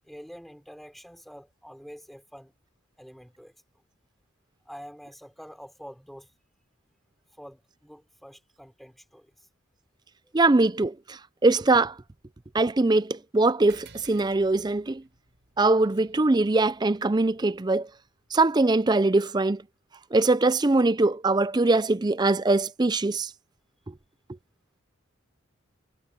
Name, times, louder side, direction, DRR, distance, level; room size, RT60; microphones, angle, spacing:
voice 1, 0.0-2.5 3.0-3.5 4.6-6.3 7.3-9.5 10.2-10.3, equal, ahead, 5.1 m, -46 dB
voice 2, 10.3-11.9 12.5-15.0 15.6-17.9 18.3-19.6 20.1-23.3, right 2 dB, 20° right, 0.5 m, -22 dB
sound 1, 13.7-18.6, right 5 dB, 55° right, 7.9 m, -56 dB
head